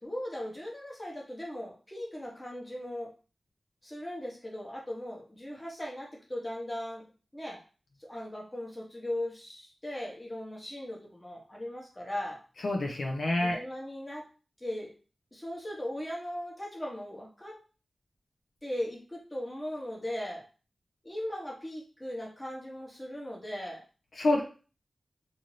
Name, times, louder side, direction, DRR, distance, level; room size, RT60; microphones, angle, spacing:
voice 1, 0.0-3.1 3.8-7.0 7.3-7.6 8.0-12.4 13.4-14.2 14.6-14.9 15.3-17.6 18.6-20.4 21.0-23.8, left 1 dB, 20° left, -2 dB, 1.0 m, -38 dB
voice 2, 12.6-13.6 24.2-24.4, left 2 dB, 80° left, 0 dB, 0.6 m, -27 dB
2.7 x 2.5 x 3.1 m, 0.36 s
wide cardioid pair, 80°, 0 cm